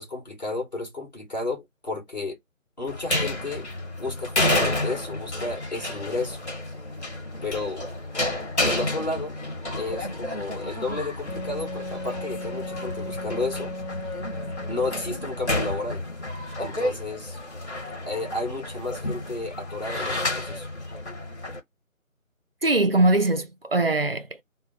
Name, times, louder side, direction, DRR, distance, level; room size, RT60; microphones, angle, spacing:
voice 1, 0.0-2.4 2.8-3.7 4.0-6.4 7.4-7.8 8.6-9.4 9.8-13.7 14.7-16.0 16.6-17.4 18.1-20.7, left 3 dB, 30° left, 1.6 m, -32 dB
sound 1, 2.9-21.6, left 1 dB, 55° left, 1.4 m, -30 dB
Wind instrument woodwind instrument, 11.3-15.4, left 1 dB, 85° left, 0.8 m, -36 dB
voice 2, 22.6-24.4, right 2 dB, 45° right, 0.5 m, -22 dB
3.1 x 2.1 x 4.1 m
figure-of-eight pair, 160°, 42 cm